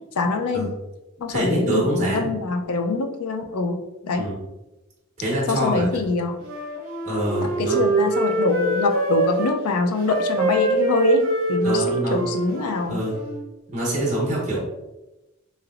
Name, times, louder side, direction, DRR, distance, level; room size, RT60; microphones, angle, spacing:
voice 1, 0.2-0.7 1.2-3.8 4.0-4.2 5.5-6.4 7.4-13.0, left 3 dB, 90° left, 6 dB, 0.4 m, -24 dB
voice 2, 1.3-2.3 4.2-4.4 5.2-5.8 7.0-7.8 11.6-12.2 12.9-13.2 13.7-14.6, right 1 dB, 35° right, -7 dB, 1.1 m, -25 dB
Wind instrument woodwind instrument, 6.4-9.6 10.0-13.4, right 3 dB, 65° right, 0.9 m, -24 dB
3.1 x 3.0 x 2.4 m, 0.99 s
head